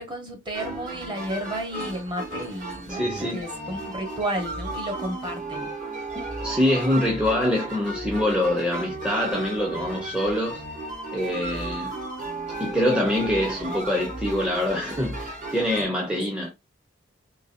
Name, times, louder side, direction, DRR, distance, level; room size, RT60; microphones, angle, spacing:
voice 1, 0.0-5.7 16.0-16.3, right 1 dB, 25° right, 1.2 m, -32 dB
sound 1, 0.5-15.9, right 2 dB, 40° right, 1.6 m, -34 dB
voice 2, 2.9-3.5 6.4-10.6 11.1-11.9 12.6-16.5, left 1 dB, 5° right, 0.7 m, -25 dB
3.8 x 3.1 x 2.6 m
head